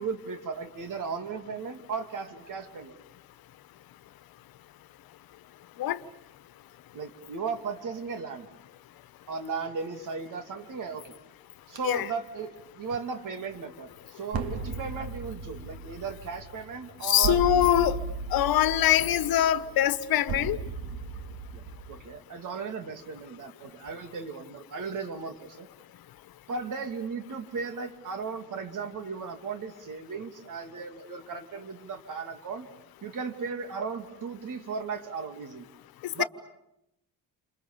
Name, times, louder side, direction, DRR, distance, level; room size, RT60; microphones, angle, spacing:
voice 1, 0.0-3.0 6.9-8.5 9.3-11.1 11.7-17.4 21.5-21.6 21.9-25.7 26.5-32.7 33.0-35.7 36.1-36.2, right 5 dB, 60° right, 2.9 m, -36 dB
sound 1, 11.8-12.0 14.3-22.0, right 4 dB, 75° right, 2.7 m, -36 dB
voice 2, 17.0-18.0 18.3-20.6 36.2-36.3, left 12 dB, 75° left, 1.3 m, -23 dB
29.5 x 28.0 x 7.0 m
cardioid pair, 150°, 36 cm